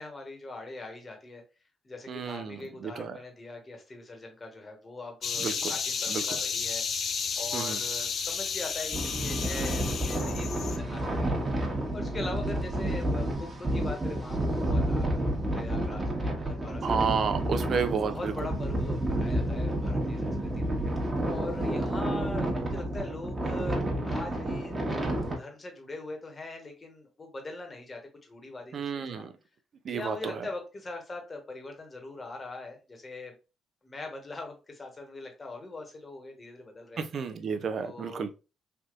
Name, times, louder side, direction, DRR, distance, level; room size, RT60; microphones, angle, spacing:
voice 1, 0.0-1.4 1.8-11.4 11.9-15.2 15.5-17.4 18.0-20.7 21.3-24.8 25.4-29.2 29.9-33.3 33.8-37.0 37.8-38.3, left 2 dB, 35° left, 1.1 m, -42 dB
voice 2, 2.1-3.2 5.4-5.7 6.1-6.2 7.5-7.8 16.8-18.3 28.7-29.3 29.8-30.4 37.0-38.3, right 6 dB, 55° right, 0.4 m, -31 dB
sound 1, 5.2-10.8, left 6 dB, 60° left, 0.4 m, -32 dB
sound 2, 8.9-25.3, right 1 dB, 30° right, 1.1 m, -30 dB
3.3 x 2.7 x 2.4 m
supercardioid pair, 55°, 0 cm